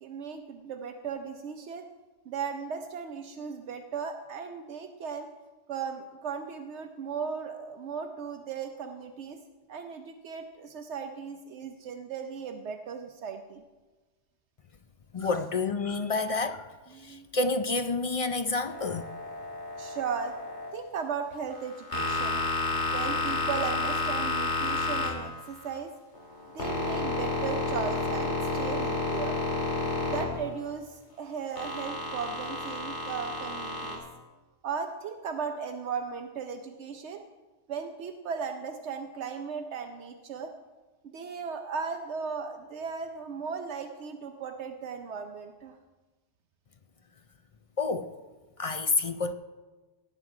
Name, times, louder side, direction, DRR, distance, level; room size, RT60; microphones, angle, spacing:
voice 1, 0.0-1.9 2.3-5.3 5.7-9.4 9.7-13.6 15.2-15.3 16.9-17.3 19.8-20.4 20.7-22.4 22.9-25.9 26.5-29.4 30.0-34.0 34.6-37.2 37.7-40.5 41.0-45.7, right 6 dB, 75° right, 6 dB, 1.0 m, -36 dB
voice 2, 15.1-16.7 17.0-19.1 47.8-48.1 48.6-49.3, left 3 dB, 45° left, 9 dB, 0.4 m, -29 dB
sound 1, 18.7-20.7 21.5-25.8 26.1-30.7 31.6-33.9, left 2 dB, 75° left, 2.6 m, -31 dB
17.0 x 8.0 x 4.8 m, 1.2 s
omnidirectional pair, 1.2 m